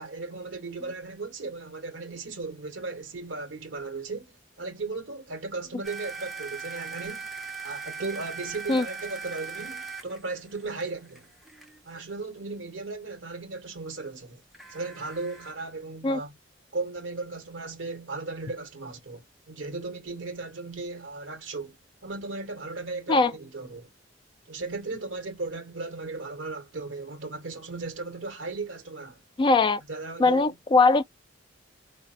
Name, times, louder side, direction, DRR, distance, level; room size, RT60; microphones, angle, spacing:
voice 1, 0.0-7.3 7.6-11.3 11.8-14.4 14.7-16.3 16.7-21.8 22.0-23.9 24.5-29.2 29.9-30.6, right 3 dB, 75° right, 0.9 m, -36 dB
sound 1, 5.8-11.8 14.5-15.5, right 5 dB, ahead, 0.7 m, -40 dB
voice 2, 29.4-29.8 30.2-31.0, left 3 dB, 25° left, 0.3 m, -20 dB
4.0 x 2.0 x 2.6 m
head